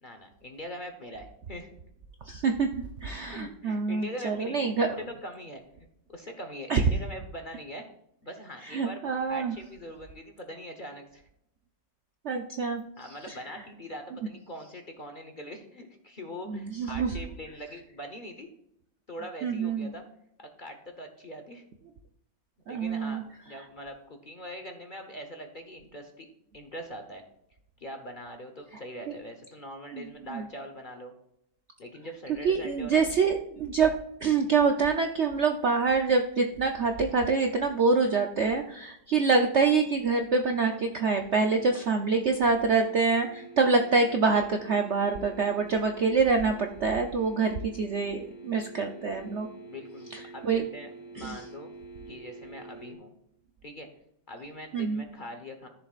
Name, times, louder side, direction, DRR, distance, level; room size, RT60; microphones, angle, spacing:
voice 1, 0.0-1.7 3.3-4.7 5.0-5.6 6.1-7.9 8.2-11.2 13.0-18.5 19.1-20.0 20.6-21.6 22.7-26.3 26.5-27.2 27.8-31.1 31.8-33.1 34.4-34.6 49.7-51.7 52.1-53.1 53.6-53.9 54.3-55.7, equal, 35° left, 4 dB, 0.8 m, -42 dB
voice 2, 2.3-4.9 6.7-6.8 8.7-9.5 12.2-12.8 16.5-17.1 19.4-19.9 22.7-23.2 29.9-30.1 30.3-30.4 32.4-33.9 34.2-49.5 50.1-50.6 51.2-51.4 54.7-55.0, right 4 dB, 90° right, 4 dB, 0.6 m, -26 dB
sound 1, 40.7-52.9, right 3 dB, 85° left, 3.2 m, -47 dB
13.5 x 7.0 x 2.4 m, 0.77 s
omnidirectional pair, 2.1 m